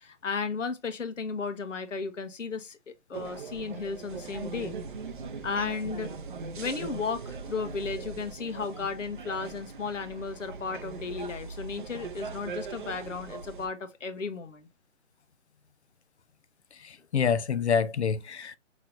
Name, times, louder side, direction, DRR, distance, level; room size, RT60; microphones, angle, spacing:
voice 1, 0.0-4.7 5.4-6.1 6.5-14.7, left 4 dB, 75° left, 1.1 m, -34 dB
sound 1, 3.1-13.7, right 4 dB, 40° right, 0.7 m, -40 dB
voice 2, 16.8-18.6, left 6 dB, 60° left, 0.7 m, -27 dB
6.1 x 3.1 x 2.5 m
figure-of-eight pair, 150°, 37 cm